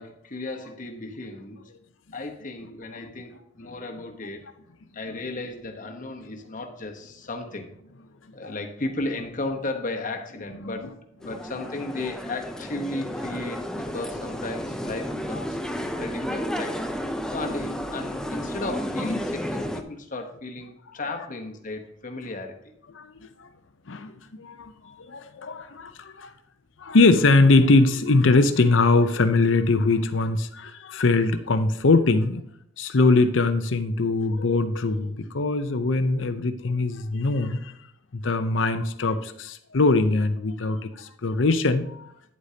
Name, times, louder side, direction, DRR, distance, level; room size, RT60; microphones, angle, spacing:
voice 1, 0.0-1.7 2.1-4.5 4.9-7.7 8.3-10.9 11.2-16.8 17.3-22.7 24.8-25.0, left 2 dB, 40° left, 3 dB, 1.1 m, -34 dB
sound 1, 11.2-19.8, equal, 5° left, 0.5 m, -32 dB
voice 2, 24.4-24.7 25.1-26.3 26.8-32.4 32.8-37.7 38.1-42.1, left 3 dB, 65° left, 10 dB, 0.7 m, -21 dB
9.5 x 8.2 x 2.8 m, 0.74 s
head